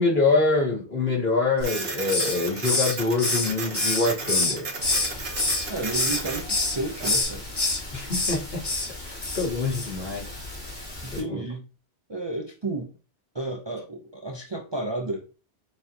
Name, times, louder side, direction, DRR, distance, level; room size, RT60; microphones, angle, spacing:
voice 1, 0.0-4.7 7.9-8.6 9.0-10.2 11.1-11.4, left 3 dB, 65° left, 2.2 m, -25 dB
Hiss, 1.6-2.4 2.6-5.1 5.4-6.2 6.5-6.8 7.0-7.8 8.1-8.4 8.6-8.9 9.2-9.5 9.7-9.9, left 2 dB, 25° left, 0.8 m, -26 dB
Printer, 1.6-7.2, right 3 dB, 65° right, 1.2 m, -34 dB
sound 1, 4.8-11.2, left 2 dB, 45° left, 2.1 m, -39 dB
voice 2, 5.7-7.4 11.0-11.6 12.1-12.9 13.3-15.2, right 2 dB, 30° right, 0.5 m, -32 dB
6.4 x 3.0 x 2.7 m
omnidirectional pair, 1.1 m